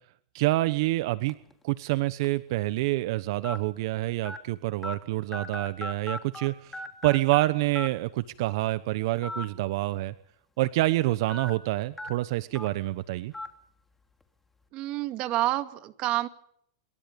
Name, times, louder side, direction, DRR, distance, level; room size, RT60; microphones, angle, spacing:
voice 1, 0.3-1.3 1.6-10.1 10.6-13.3, right 18 dB, 60° right, 14 dB, 1.1 m, -27 dB
sound 1, 1.3-1.5 2.2-2.3 3.4-3.6 4.3-4.4 4.8-4.9 5.3-6.5 6.7-7.4 7.8-7.9 9.2-9.4 9.8-9.9 11.3-11.5 12.0-12.1 12.6-12.7 13.3-13.5, left 1 dB, 10° left, 3.2 m, -36 dB
voice 2, 14.7-16.3, right 15 dB, 40° right, 9 dB, 2.2 m, -28 dB
27.5 x 23.5 x 5.4 m, 0.69 s
hypercardioid pair, 125°, 3 cm